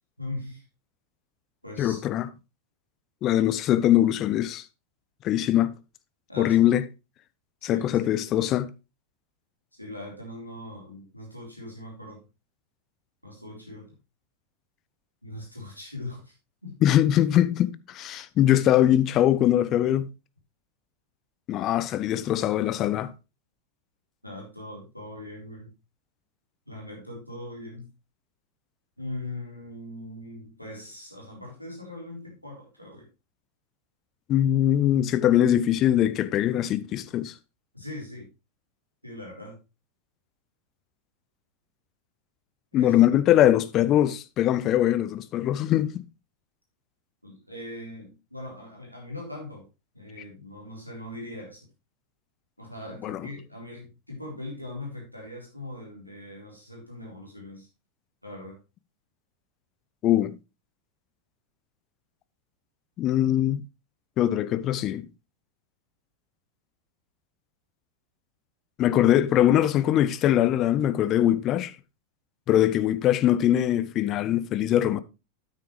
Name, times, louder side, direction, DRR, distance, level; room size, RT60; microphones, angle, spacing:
voice 1, 0.2-0.6 1.6-2.0 6.3-6.7 7.6-8.1 9.7-12.2 13.2-13.9 15.2-16.3 16.6-16.7 24.2-25.7 26.7-27.8 29.0-33.1 37.7-38.3 39.0-39.6 42.7-42.9 47.2-49.7 49.9-51.6 52.6-57.7 58.2-58.6, left 1 dB, 90° left, 3.9 m, -40 dB
voice 2, 1.8-2.3 3.2-4.6 5.2-5.7 6.4-6.8 7.6-8.7 16.8-20.1 21.5-23.1 34.3-37.3 42.7-45.9 53.0-53.2 60.0-60.4 63.0-63.6 64.2-65.1 68.8-71.7 72.5-75.0, left 12 dB, 35° left, 0.6 m, -22 dB
9.2 x 8.7 x 3.2 m
figure-of-eight pair, 90°, 0 cm